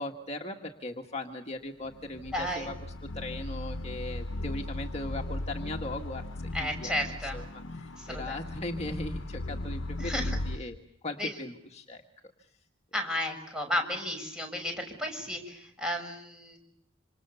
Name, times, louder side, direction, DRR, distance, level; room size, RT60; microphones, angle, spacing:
voice 1, 0.0-2.7 3.1-6.2 6.6-6.9 7.3-10.8 11.0-12.0, left 1 dB, 35° left, 2 dB, 1.6 m, -38 dB
sound 1, 1.8-10.6, left 2 dB, 70° left, 1.0 m, -37 dB
voice 2, 2.3-2.7 6.5-7.4 8.0-8.4 10.0-10.4 11.2-11.4 12.9-16.6, left 1 dB, 5° right, 2 dB, 6.4 m, -33 dB
27.0 x 27.0 x 6.9 m, 0.76 s
head